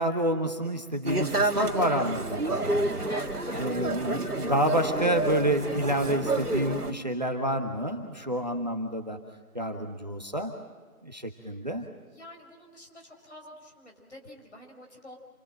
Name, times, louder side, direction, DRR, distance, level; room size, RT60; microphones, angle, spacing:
voice 1, 0.0-3.1 3.5-9.2 9.5-10.5 11.0-11.8, right 1 dB, 30° right, 4 dB, 1.3 m, -29 dB
sound 1, 1.1-6.9, right 2 dB, 85° right, 2.1 m, -29 dB
voice 2, 3.1-3.8 11.4-11.6 12.1-15.2, left 1 dB, 50° left, 1 dB, 5.6 m, -47 dB
28.0 x 22.5 x 7.7 m, 1.4 s
figure-of-eight pair, 170°, 44 cm